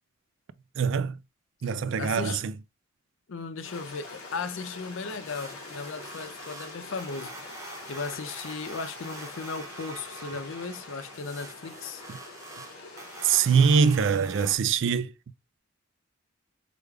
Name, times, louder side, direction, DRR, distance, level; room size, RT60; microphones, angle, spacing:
voice 1, 0.8-1.2 1.6-2.5 13.2-15.1, right 6 dB, 60° right, 0.3 m, -23 dB
voice 2, 2.0-2.4 3.3-7.4 7.9-12.0, left 4 dB, 60° left, 0.5 m, -36 dB
Stream, 3.6-14.0, left 3 dB, 85° left, 1.3 m, -44 dB
sound 1, 5.2-14.6, right 3 dB, 15° right, 0.7 m, -45 dB
5.0 x 2.3 x 3.3 m
head